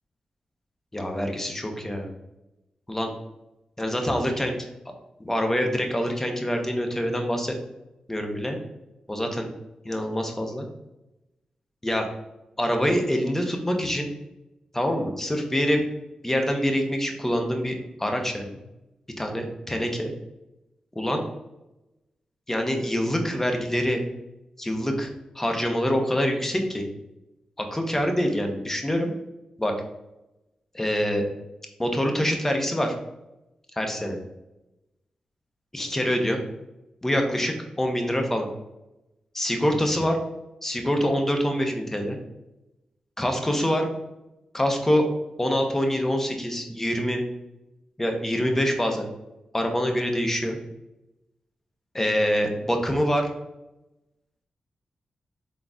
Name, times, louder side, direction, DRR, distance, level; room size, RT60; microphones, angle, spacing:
voice 1, 0.9-2.1 2.9-3.1 3.8-4.6 5.2-7.5 8.1-8.6 9.1-9.5 9.9-10.7 11.8-12.1 12.6-14.1 14.7-15.8 16.2-18.6 19.2-20.1 21.0-21.2 22.5-24.0 24.6-25.1 25.3-26.8 27.6-29.1 29.6-29.7 30.7-31.2 31.8-33.0 33.8-34.2 35.7-36.4 37.0-38.5 39.3-40.2 40.6-42.2 43.2-43.9 44.5-45.1 45.4-47.2 48.0-49.1 49.5-50.6 51.9-53.3, equal, 15° left, 4 dB, 0.7 m, -25 dB
3.8 x 3.8 x 2.3 m, 0.94 s
cardioid pair, 65°, 2 cm